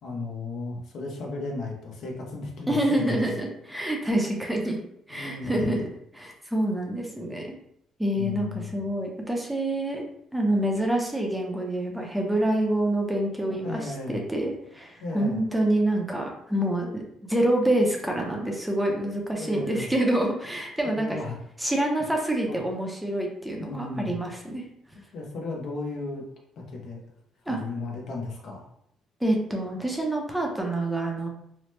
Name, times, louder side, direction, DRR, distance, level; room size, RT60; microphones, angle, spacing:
voice 1, 0.0-3.4 5.1-5.8 8.2-8.8 13.6-14.3 15.0-15.4 19.4-19.9 20.8-21.4 22.5-22.6 23.6-24.2 25.1-26.2 26.6-27.0 27.5-28.7, left 3 dB, 65° left, -1 dB, 0.7 m, -35 dB
voice 2, 2.7-4.8 5.1-5.8 6.1-7.5 8.0-10.0 10.3-21.2 21.6-24.6 27.5-27.6 29.2-31.3, right 1 dB, 5° right, 0 dB, 0.5 m, -27 dB
2.9 x 2.0 x 3.1 m, 0.73 s
cardioid pair, 105°, 0 cm